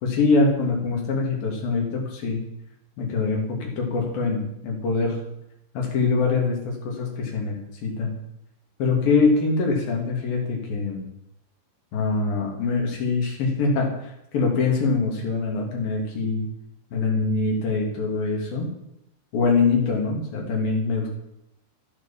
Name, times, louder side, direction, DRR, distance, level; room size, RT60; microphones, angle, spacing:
voice 1, 0.0-2.4 3.0-5.2 5.7-6.6 6.8-8.1 8.8-11.0 11.9-13.9 14.3-16.4 16.9-18.7 19.3-21.1, left 4 dB, 55° left, 0 dB, 4.3 m, -23 dB
14.5 x 8.7 x 7.5 m, 0.81 s
omnidirectional pair, 5.3 m